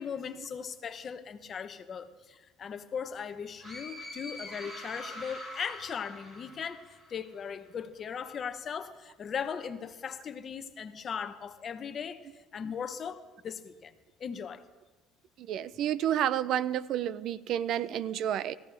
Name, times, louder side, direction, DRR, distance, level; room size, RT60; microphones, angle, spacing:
voice 1, 0.0-13.9 14.2-14.6, left 7 dB, 40° left, 10 dB, 0.9 m, -38 dB
sound 1, 3.6-7.3, left 1 dB, 20° right, 5.5 m, -44 dB
voice 2, 15.4-18.5, right 10 dB, 60° right, 18 dB, 0.5 m, -30 dB
18.5 x 15.0 x 3.4 m, 1.3 s
cardioid pair, 110°, 0 cm